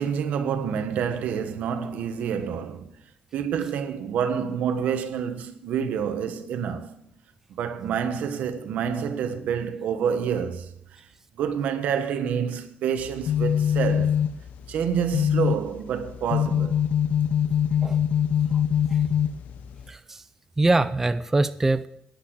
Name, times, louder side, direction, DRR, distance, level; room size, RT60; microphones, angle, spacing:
voice 1, 0.0-2.9 3.3-7.1 7.5-10.7 11.3-14.2 14.7-16.8, right 7 dB, 80° right, 1.4 m, -28 dB
sound 1, 13.0-19.9, left 9 dB, 85° left, 0.8 m, -24 dB
voice 2, 19.9-20.2 20.6-21.9, right 2 dB, 15° right, 0.5 m, -23 dB
10.0 x 10.0 x 6.2 m
cardioid pair, 145°, 3 cm